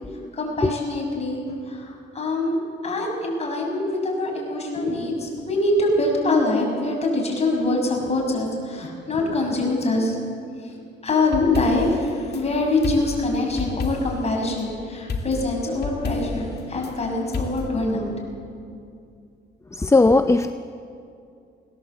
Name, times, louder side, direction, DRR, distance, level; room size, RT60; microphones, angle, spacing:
voice 1, 0.3-2.6 2.8-10.2 10.6-10.7 11.0-18.2, left 2 dB, 30° left, 0 dB, 6.6 m, -24 dB
sound 1, 11.2-12.4 12.8-14.3 15.1-16.9 17.3-17.7, left 4 dB, 55° left, 2.4 m, -31 dB
voice 2, 19.8-20.5, left 3 dB, 15° left, 10 dB, 0.6 m, -17 dB
20.5 x 17.5 x 8.1 m, 2.5 s
cardioid pair, 90°, 20 cm